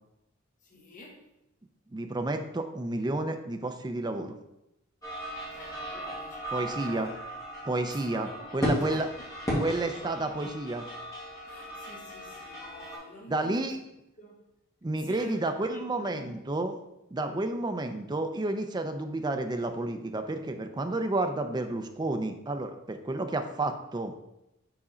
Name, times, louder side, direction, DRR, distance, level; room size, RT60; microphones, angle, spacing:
voice 1, 0.6-1.3 5.5-7.2 7.8-9.3 9.9-10.1 11.4-13.9 14.2-14.5 15.0-16.4 17.3-17.5, left 1 dB, 40° left, 1.2 m, -48 dB
voice 2, 1.9-4.4 6.5-7.1 7.7-9.1 9.6-10.9 13.3-13.8 14.8-16.8 17.1-24.1, right 2 dB, 20° right, 0.5 m, -31 dB
sound 1, 5.0-13.0, equal, 15° left, 1.7 m, -35 dB
4.8 x 4.1 x 4.9 m
head